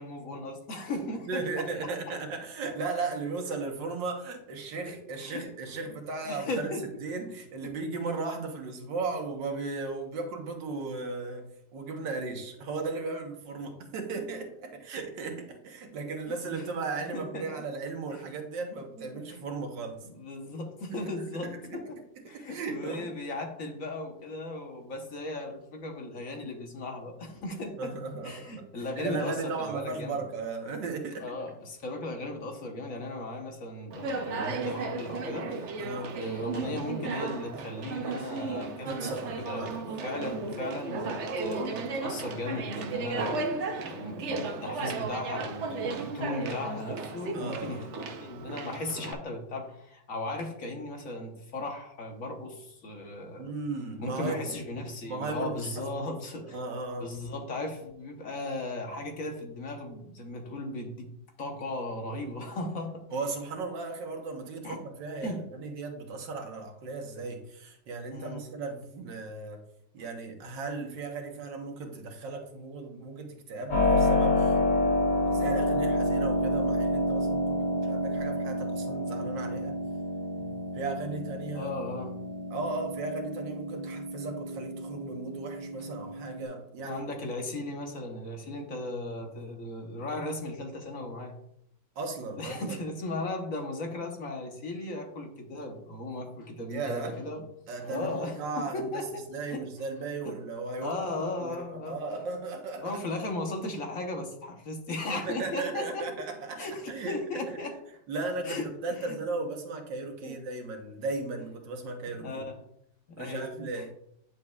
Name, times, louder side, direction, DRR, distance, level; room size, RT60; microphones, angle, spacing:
voice 1, 0.0-1.9 4.9-5.4 6.3-6.9 16.3-16.6 17.1-17.5 18.1-18.2 19.0-19.4 20.0-22.0 22.3-27.9 28.2-30.2 31.2-35.7 36.1-53.5 54.0-56.6 57.0-61.1 61.4-63.1 64.6-64.8 65.2-65.5 68.1-68.4 80.4-80.6 81.5-82.2 86.8-91.3 92.4-97.4 97.8-98.4 98.7-99.6 100.2-100.4 100.8-102.0 102.8-106.3 106.6-107.8 108.4-109.2 110.2-110.4 112.2-112.6 113.1-113.9, left 2 dB, 55° left, 3 dB, 1.3 m, -37 dB
voice 2, 1.3-6.7 7.0-20.0 20.9-21.0 21.4-21.8 22.3-23.1 27.8-28.7 29.0-31.2 35.8-36.2 38.9-39.8 40.2-40.4 47.3-47.9 53.4-54.5 55.0-56.2 56.4-57.1 62.2-62.5 63.1-69.6 69.9-74.6 75.3-79.8 80.7-81.7 82.5-87.0 91.9-92.8 96.7-97.1 97.7-99.0 99.3-103.0 105.1-107.2 108.1-112.5 113.2-113.9, right 3 dB, 85° right, 3 dB, 1.9 m, -36 dB
Conversation, 33.9-49.1, right 4 dB, 60° right, 0.8 m, -35 dB
Keyboard (musical), 73.7-86.4, left 1 dB, 80° left, 3.2 m, -29 dB
9.7 x 7.1 x 2.3 m, 0.75 s
omnidirectional pair, 1.9 m